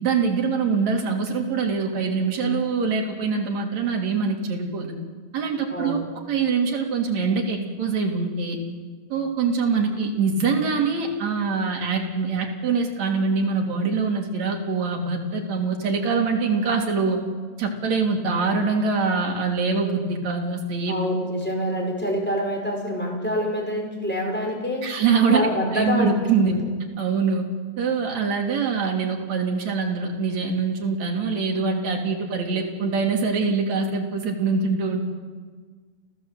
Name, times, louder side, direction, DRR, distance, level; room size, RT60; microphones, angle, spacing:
voice 1, 0.0-4.9 5.3-6.0 6.3-8.6 9.1-17.2 17.6-21.0 24.8-26.5 27.0-27.4 27.8-35.0, right 4 dB, 65° right, 1 dB, 4.0 m, -24 dB
voice 2, 5.7-6.0 20.9-24.8 25.3-26.2 26.4-26.6, equal, 5° left, 0 dB, 4.8 m, -26 dB
29.5 x 14.5 x 8.1 m, 1.5 s
omnidirectional pair, 3.5 m